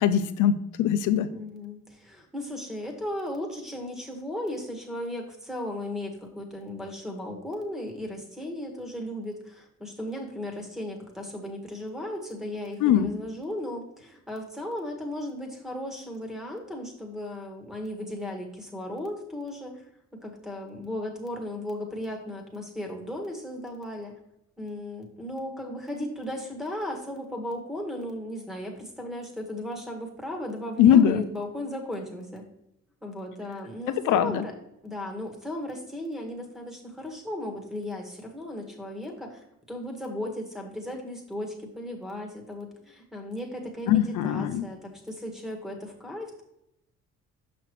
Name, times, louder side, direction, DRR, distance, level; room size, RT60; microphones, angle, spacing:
voice 1, 0.0-1.3 12.8-13.1 30.8-31.2 34.0-34.5 43.9-44.7, left 9 dB, 80° left, 11 dB, 0.6 m, -21 dB
voice 2, 1.3-19.8 20.2-24.1 24.6-32.4 33.0-34.5 34.8-46.4, left 1 dB, ahead, -1 dB, 1.5 m, -36 dB
6.0 x 5.8 x 3.1 m, 0.83 s
cardioid pair, 90°, 30 cm